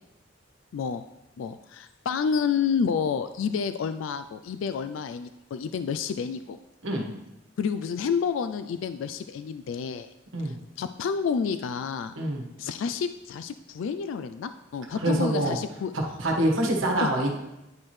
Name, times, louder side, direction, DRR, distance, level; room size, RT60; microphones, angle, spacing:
voice 1, 0.7-1.0 1.4-6.6 7.6-10.1 10.4-12.1 12.6-15.9 17.0-17.1, left 6 dB, 75° left, 10 dB, 0.3 m, -29 dB
voice 2, 15.0-15.6 16.2-17.4, right 1 dB, 80° right, 0 dB, 1.4 m, -25 dB
10.5 x 4.3 x 3.2 m, 0.92 s
head